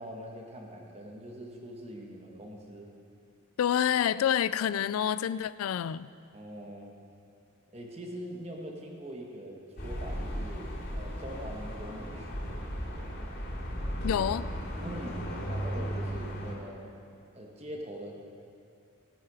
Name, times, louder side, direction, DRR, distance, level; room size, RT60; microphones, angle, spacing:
voice 1, 0.0-2.9 6.3-6.9 7.7-12.6 14.8-16.9 17.3-18.2, equal, 30° right, 1.5 m, -43 dB
voice 2, 3.6-6.1 14.0-14.5, left 9 dB, 85° left, 0.3 m, -28 dB
sound 1, 9.8-16.6, equal, 50° left, 2.8 m, -36 dB
16.5 x 9.3 x 4.9 m
head